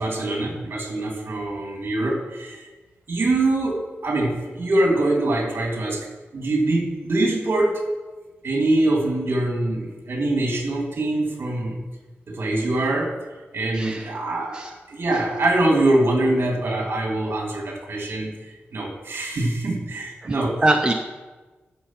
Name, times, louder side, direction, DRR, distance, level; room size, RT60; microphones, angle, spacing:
voice 1, 0.0-2.7 3.1-7.7 8.4-11.8 12.3-13.1 13.5-18.3 18.7-20.6, right 2 dB, 60° right, 1 dB, 3.0 m, -23 dB
voice 2, 13.7-14.1 14.5-14.7 20.2-20.3 20.6-20.9, right 2 dB, 20° right, 3 dB, 0.8 m, -22 dB
14.0 x 7.0 x 5.9 m, 1.2 s
wide cardioid pair, 120°, 5 cm